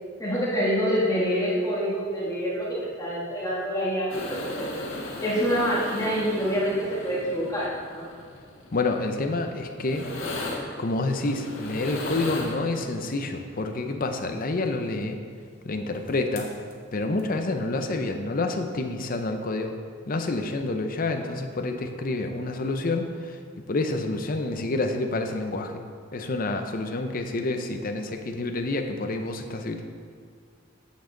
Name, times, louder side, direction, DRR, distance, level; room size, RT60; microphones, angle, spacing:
voice 1, 0.2-4.7 5.2-8.1, equal, 15° left, -6 dB, 1.5 m, -26 dB
sound 1, 4.1-13.1 16.1-16.2 16.4-16.7 17.2-17.3, left 2 dB, 85° left, 1.5 m, -37 dB
voice 2, 8.7-10.1 10.8-15.2 15.6-16.5 16.9-19.8 20.1-23.4 23.7-25.8 26.1-29.8, left 2 dB, 45° left, 5 dB, 0.7 m, -28 dB
9.0 x 7.2 x 3.9 m, 2.1 s
head